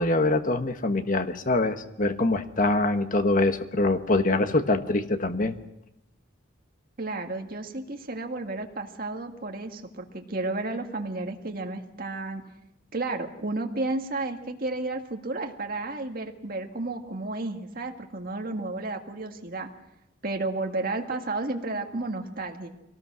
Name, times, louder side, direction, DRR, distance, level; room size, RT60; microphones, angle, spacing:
voice 1, 0.0-5.5, left 2 dB, 40° left, 8 dB, 1.3 m, -24 dB
voice 2, 7.0-12.4 12.9-19.7 20.2-22.7, right 2 dB, 50° right, 3 dB, 1.9 m, -32 dB
24.5 x 18.5 x 6.2 m, 0.88 s
head